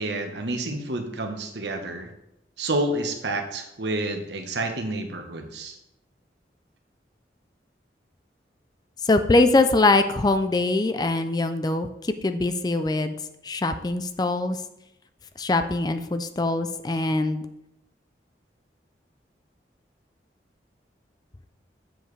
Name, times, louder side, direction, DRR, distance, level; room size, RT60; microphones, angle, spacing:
voice 1, 0.0-2.1 2.6-5.8, right 2 dB, 80° right, 5 dB, 1.1 m, -29 dB
voice 2, 9.0-13.1 13.4-14.6 15.4-17.4, left 2 dB, 20° left, 9 dB, 0.4 m, -22 dB
7.7 x 7.0 x 3.3 m, 0.85 s
head